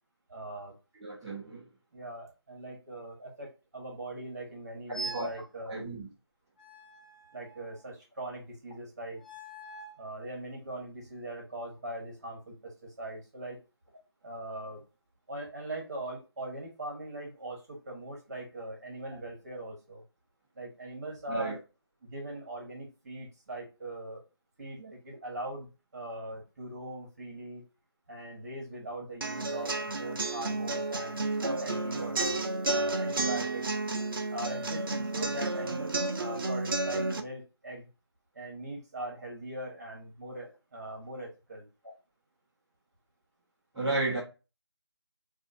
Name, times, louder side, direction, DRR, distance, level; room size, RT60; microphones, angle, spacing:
voice 1, 0.3-0.7 1.9-5.8 7.3-9.2 10.0-13.6 14.2-14.8 15.3-20.0 20.6-21.6 22.0-24.2 24.6-27.7 28.1-32.4 32.7-33.6 34.3-37.9 38.4-41.7, right 1 dB, 40° right, 1.7 m, -41 dB
voice 2, 1.0-1.7 3.2-3.3 4.9-5.3 5.6-6.1 21.3-21.5 43.7-44.2, right 2 dB, 5° right, 1.4 m, -33 dB
sound 1, 4.9-5.4 6.6-7.8 9.2-10.0, right 3 dB, 20° left, 0.5 m, -43 dB
sound 2, 29.2-37.2, right 2 dB, 55° right, 0.6 m, -31 dB
4.9 x 2.6 x 2.7 m
figure-of-eight pair, 160°, 14 cm